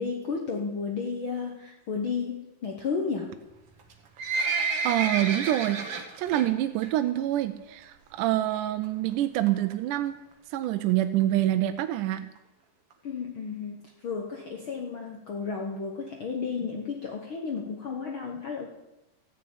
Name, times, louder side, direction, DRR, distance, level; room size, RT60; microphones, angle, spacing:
voice 1, 0.0-3.3 13.0-18.7, left 5 dB, 60° left, 1 dB, 1.4 m, -33 dB
Livestock farm animals working animals, 3.8-6.5 6.8-7.1 7.4-7.5 8.2-8.3 8.6-8.7 8.8-8.9 9.5-9.7 10.3-10.4 10.6-10.7 10.9-11.0 11.2-11.3 11.8-11.9 12.4-12.5 12.9-13.0, right 4 dB, 55° right, 2.0 m, -30 dB
voice 2, 4.8-10.2 10.5-12.3, right 13 dB, 80° right, 9 dB, 2.0 m, -26 dB
14.0 x 6.9 x 8.8 m, 0.99 s
omnidirectional pair, 3.9 m